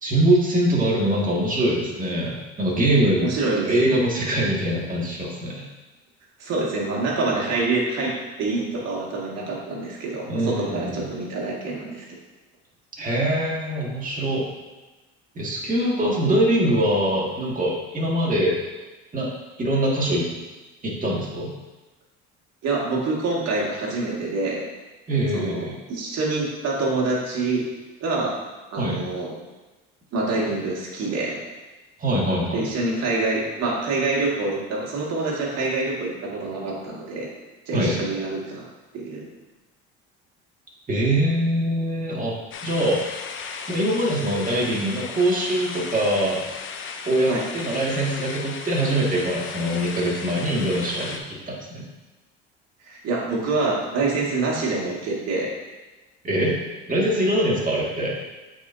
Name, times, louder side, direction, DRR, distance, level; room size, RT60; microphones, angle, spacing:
voice 1, 0.0-3.3 3.7-5.6 10.3-11.0 13.0-14.5 15.4-18.6 19.1-19.3 19.6-20.3 20.8-21.5 25.1-25.7 28.8-29.0 32.0-32.6 37.7-38.0 40.9-42.3 42.6-43.0 43.7-46.4 47.1-51.9 56.2-56.6 56.9-58.1, right 1 dB, 30° right, -3 dB, 2.0 m, -23 dB
voice 2, 3.2-3.7 6.4-12.0 22.6-24.6 25.3-27.7 28.0-28.4 28.7-29.3 30.1-31.4 32.5-37.3 37.7-38.6 38.9-39.3 47.3-47.4 52.9-55.5, right 3 dB, 60° right, -3 dB, 2.0 m, -26 dB
sound 1, 42.5-51.2, left 5 dB, 45° left, 0.7 m, -36 dB
8.3 x 4.5 x 2.7 m, 1.1 s
supercardioid pair, 85°, 29 cm